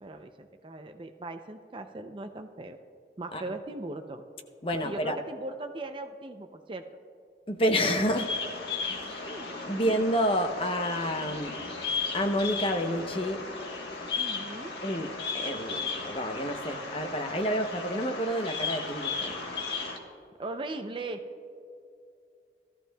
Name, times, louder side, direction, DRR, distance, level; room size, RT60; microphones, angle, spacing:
voice 1, 0.0-2.8 3.2-4.2 4.8-6.9 9.0-9.8 14.2-14.7 20.4-21.2, right 2 dB, 30° right, 7 dB, 0.4 m, -39 dB
voice 2, 4.6-5.2 7.5-8.4 8.9-9.2 9.7-11.5 12.1-13.4 14.8-19.4, equal, 30° left, 6 dB, 0.7 m, -29 dB
Bird vocalization bird call bird song, 7.8-20.0, left 4 dB, 70° left, 1.3 m, -35 dB
17.0 x 13.5 x 2.2 m, 2.5 s
head